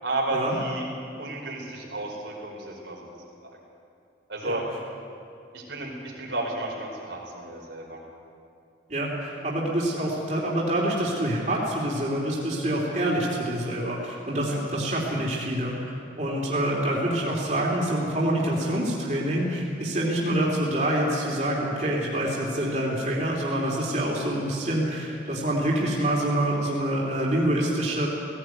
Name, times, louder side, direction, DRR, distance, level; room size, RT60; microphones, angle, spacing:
voice 1, 0.0-0.8 1.2-3.1 3.5-3.6 4.3-4.6 5.5-8.0 14.5-14.6, right 2 dB, 85° right, -2 dB, 4.8 m, -32 dB
voice 2, 8.9-28.1, right 1 dB, 40° right, -3 dB, 3.3 m, -26 dB
17.0 x 17.0 x 9.3 m, 2.5 s
head